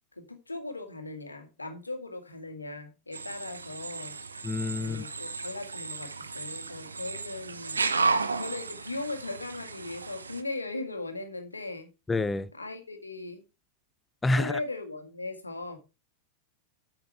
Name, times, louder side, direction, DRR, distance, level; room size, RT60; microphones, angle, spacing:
voice 1, 0.2-4.2 4.8-7.8 8.4-11.9 12.5-13.4 14.4-15.8, left 2 dB, 80° left, 1.8 m, -38 dB
sound 1, 3.1-10.4, right 4 dB, 75° right, 0.8 m, -33 dB
voice 2, 4.4-5.0 12.1-12.5 14.2-14.6, left 2 dB, 10° left, 0.6 m, -27 dB
8.9 x 7.7 x 4.6 m
figure-of-eight pair, 90°, 0 cm